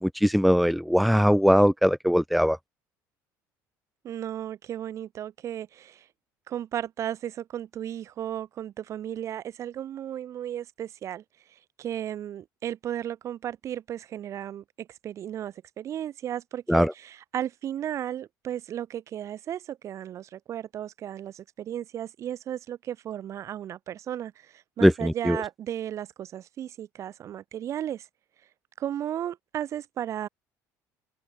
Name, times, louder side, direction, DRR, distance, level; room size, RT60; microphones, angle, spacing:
voice 1, 0.0-2.6 16.7-16.9 24.8-25.4, equal, ahead, 1.1 m, -21 dB
voice 2, 4.0-6.1 6.5-11.2 11.5-28.1 28.8-30.3, right 10 dB, 45° right, 3.9 m, -35 dB
open air
cardioid pair, 130°, 7 cm